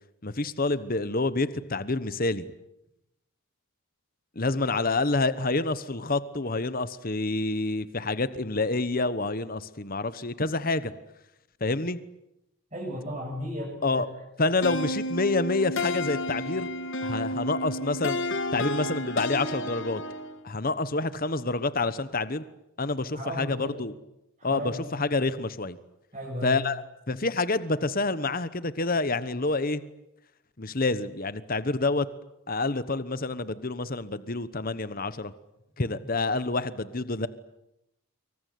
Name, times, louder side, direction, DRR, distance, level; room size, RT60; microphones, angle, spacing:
voice 1, 0.2-2.4 4.3-10.9 11.6-12.0 13.8-14.1 14.4-16.7 17.0-18.2 18.5-20.0 20.4-22.4 22.8-23.9 24.4-25.8 26.4-29.8 30.6-32.1 32.5-35.3 35.8-37.3, left 3 dB, 40° left, 14 dB, 1.1 m, -28 dB
voice 2, 12.7-14.0 23.1-23.8 24.4-24.8 26.1-26.6, equal, 30° right, -4 dB, 8.0 m, -35 dB
sound 1, 14.6-20.4, left 1 dB, 55° left, 1.8 m, -31 dB
25.5 x 24.5 x 9.3 m, 0.87 s
head